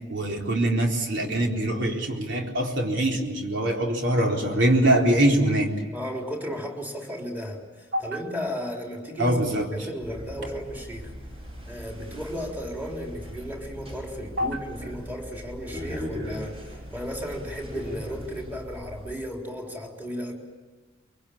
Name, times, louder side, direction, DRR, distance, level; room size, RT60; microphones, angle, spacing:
voice 1, 0.1-5.7 7.9-8.0 9.2-9.7 14.4-14.5, right 1 dB, 65° right, 1 dB, 4.1 m, -23 dB
voice 2, 5.9-9.4 9.7-11.1 11.7-20.3, equal, 10° right, 1 dB, 3.8 m, -34 dB
sound 1, 10.0-19.2, equal, 30° right, 6.9 m, -39 dB
24.0 x 23.5 x 8.6 m, 1.3 s
head